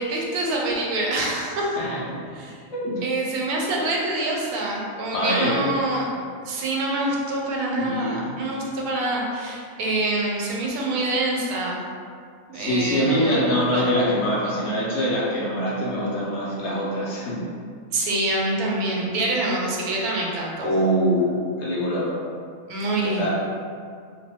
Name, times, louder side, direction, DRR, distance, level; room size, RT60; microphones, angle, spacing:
voice 1, 0.0-1.8 2.3-2.5 3.0-6.1 6.4-11.8 12.5-13.9 17.9-20.7 22.7-23.3, right 2 dB, 85° right, -2 dB, 1.1 m, -26 dB
voice 2, 2.7-3.0 5.1-5.6 7.8-8.3 12.5-17.5 20.6-22.2 23.0-23.3, equal, 60° left, -6 dB, 0.8 m, -24 dB
2.6 x 2.2 x 2.7 m, 2.1 s
omnidirectional pair, 1.5 m